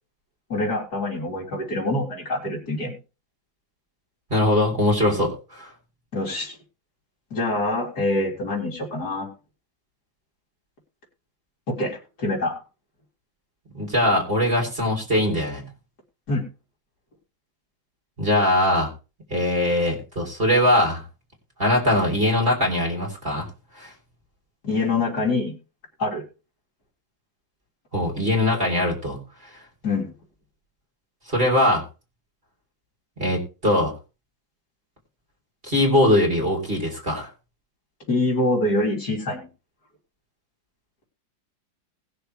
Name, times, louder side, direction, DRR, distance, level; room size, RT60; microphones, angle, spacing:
voice 1, 0.5-3.0 6.1-6.6 7.3-9.3 11.7-12.5 16.3-16.5 24.6-25.5 26.0-26.2 29.8-30.1 38.1-39.5, left 2 dB, 55° left, -2 dB, 4.1 m, -25 dB
voice 2, 4.3-5.7 13.7-15.7 18.2-18.9 19.3-21.0 21.6-23.5 23.8-23.9 27.9-29.2 31.3-31.8 33.2-33.9 35.6-37.3, left 1 dB, 30° right, 0 dB, 4.2 m, -21 dB
20.0 x 7.0 x 3.4 m, 0.32 s
omnidirectional pair, 2.0 m